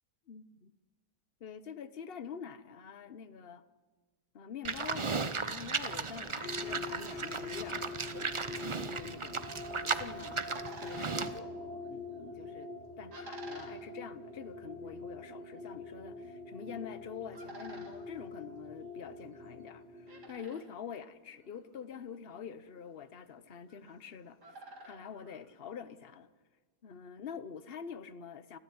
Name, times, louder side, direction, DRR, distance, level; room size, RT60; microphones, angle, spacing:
voice 1, 0.3-0.7 1.4-3.7 4.3-5.1 5.5-9.5 9.8-12.7 13.0-26.3 26.8-28.6, left 7 dB, 40° left, 1.0 m, -46 dB
Livestock farm animals working animals, 4.6-11.4, right 4 dB, 45° right, 0.4 m, -36 dB
sound 1, 6.4-20.3, left 3 dB, 25° left, 3.3 m, -45 dB
sound 2, 10.4-26.1, right 2 dB, 70° right, 3.7 m, -55 dB
28.5 x 14.0 x 9.5 m
omnidirectional pair, 1.8 m